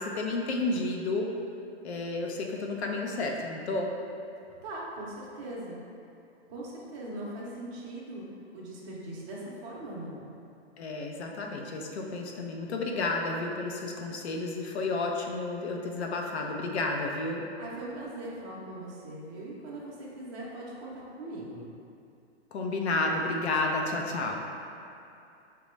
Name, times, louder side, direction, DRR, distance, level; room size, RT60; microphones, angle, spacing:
voice 1, 0.0-1.3 1.8-3.9 10.8-17.4 22.5-24.4, left 2 dB, 75° left, 1 dB, 0.7 m, -31 dB
voice 2, 4.6-5.8 6.5-8.2 8.5-10.2 17.6-21.6, right 1 dB, 25° right, -6 dB, 0.6 m, -40 dB
5.2 x 2.2 x 3.1 m, 2.7 s
hypercardioid pair, 155°, 33 cm